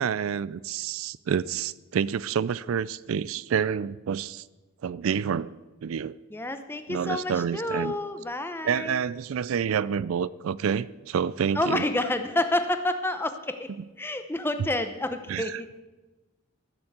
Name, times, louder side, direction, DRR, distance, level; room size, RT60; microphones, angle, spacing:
voice 1, 0.0-4.4 4.8-5.5 5.8-6.2 6.9-7.9 8.6-11.8 15.3-15.6, right 7 dB, 75° right, 18 dB, 0.4 m, -28 dB
voice 2, 6.3-9.0 11.5-13.7 14.0-15.7, left 1 dB, 10° left, 8 dB, 0.8 m, -29 dB
14.0 x 7.0 x 8.0 m, 1.2 s
head